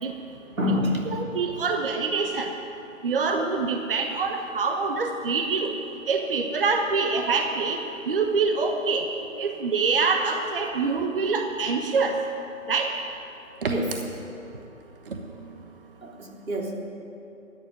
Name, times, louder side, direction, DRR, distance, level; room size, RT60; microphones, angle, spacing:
voice 1, 0.5-1.1 13.7-14.0 16.0-16.7, left 1 dB, 85° right, 0 dB, 3.3 m, -27 dB
voice 2, 1.1-2.5 3.0-5.7 6.1-7.8 8.1-9.1 9.4-12.1 12.7-12.9 13.6-13.7, right 4 dB, 40° right, 4 dB, 1.1 m, -25 dB
13.5 x 10.0 x 9.8 m, 2.9 s
figure-of-eight pair, 155°, 40 cm